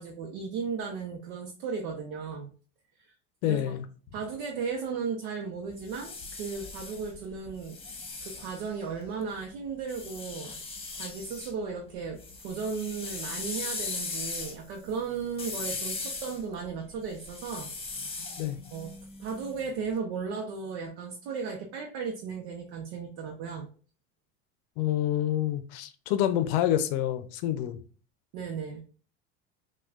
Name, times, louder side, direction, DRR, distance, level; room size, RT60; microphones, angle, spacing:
voice 1, 0.0-2.5 3.0-3.1 3.4-3.8 4.1-7.8 8.2-10.5 10.9-12.2 12.4-17.7 18.0-18.2 18.7-18.9 19.2-23.7 28.3-28.8, right 5 dB, 70° right, 0.8 m, -35 dB
voice 2, 3.4-3.8 18.4-18.6 24.8-27.8, left 12 dB, 70° left, 0.6 m, -27 dB
sound 1, 5.7-9.2 9.9-11.5 11.9-19.8, left 3 dB, 15° left, 1.1 m, -39 dB
5.9 x 2.3 x 2.3 m
supercardioid pair, 90°, 32 cm